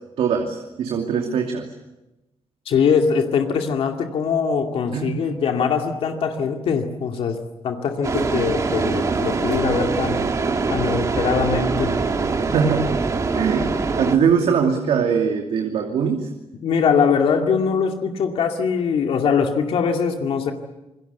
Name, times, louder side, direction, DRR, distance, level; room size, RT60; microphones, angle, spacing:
voice 1, 0.2-1.7 4.9-5.2 8.3-8.5 12.5-12.9 13.3-16.3, right 6 dB, 80° right, 3 dB, 2.7 m, -21 dB
voice 2, 2.7-7.4 7.6-10.3 10.7-12.0 16.6-20.5, left 6 dB, 70° left, 3 dB, 2.4 m, -22 dB
sound 1, 8.0-14.2, right 4 dB, 30° right, 2.2 m, -23 dB
27.0 x 22.0 x 8.3 m, 0.98 s
wide cardioid pair, 165°, 10 cm